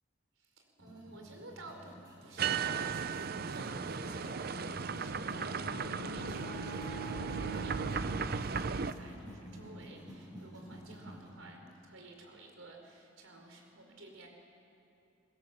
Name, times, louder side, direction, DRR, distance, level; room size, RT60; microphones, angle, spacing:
voice 1, 0.4-14.3, right 2 dB, 90° right, 2 dB, 4.3 m, -52 dB
sound 1, 0.8-11.3, equal, 20° right, 5.7 m, -51 dB
sound 2, 2.4-8.9, right 5 dB, 50° right, 0.6 m, -36 dB
Bowed string instrument, 4.4-9.1, right 3 dB, 65° right, 7.8 m, -45 dB
24.5 x 21.0 x 7.4 m, 2.7 s
head